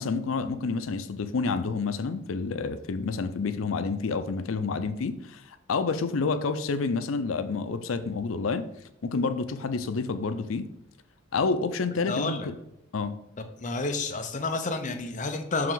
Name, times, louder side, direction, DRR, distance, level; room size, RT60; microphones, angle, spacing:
voice 1, 0.0-8.7 9.0-10.7 11.3-12.4 12.9-13.2, left 4 dB, 85° left, 11 dB, 0.5 m, -29 dB
voice 2, 12.1-12.5 13.6-15.7, left 3 dB, 40° left, 6 dB, 0.7 m, -30 dB
6.0 x 4.7 x 3.9 m, 0.82 s
head